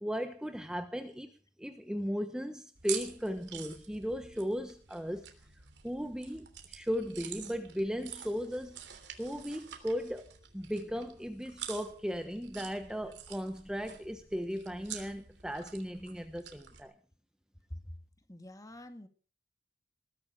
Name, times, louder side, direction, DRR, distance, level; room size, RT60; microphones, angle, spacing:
voice 1, 0.0-1.3 1.6-5.3 5.8-8.8 9.2-16.9, equal, 5° right, 1.1 m, -36 dB
sound 1, 2.8-16.8, right 9 dB, 75° right, 3.2 m, -47 dB
voice 2, 18.3-19.1, left 1 dB, 20° left, 1.9 m, -45 dB
20.5 x 12.0 x 5.0 m
head